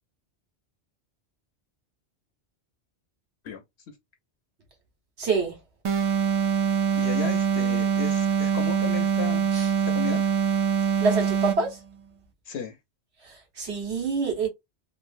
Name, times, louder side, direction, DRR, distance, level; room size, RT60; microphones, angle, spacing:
voice 1, 5.2-5.6 9.5-9.7 11.0-11.8 13.2-14.5, right 4 dB, 75° right, 1.5 m, -26 dB
sound 1, 5.8-11.7, right 7 dB, 45° right, 0.4 m, -24 dB
voice 2, 6.9-9.5 9.9-10.3 12.4-12.8, left 7 dB, 75° left, 0.9 m, -34 dB
3.2 x 2.2 x 2.5 m
omnidirectional pair, 1.1 m